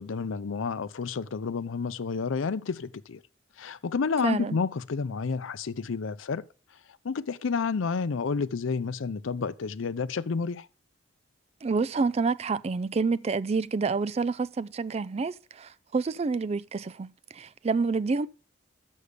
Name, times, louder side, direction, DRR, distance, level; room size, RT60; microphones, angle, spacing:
voice 1, 0.0-3.2 3.6-6.4 7.0-10.7, left 5 dB, 85° left, 0.5 m, -30 dB
voice 2, 4.2-4.6 11.6-18.3, right 4 dB, 30° right, 0.3 m, -28 dB
6.7 x 6.3 x 6.6 m
head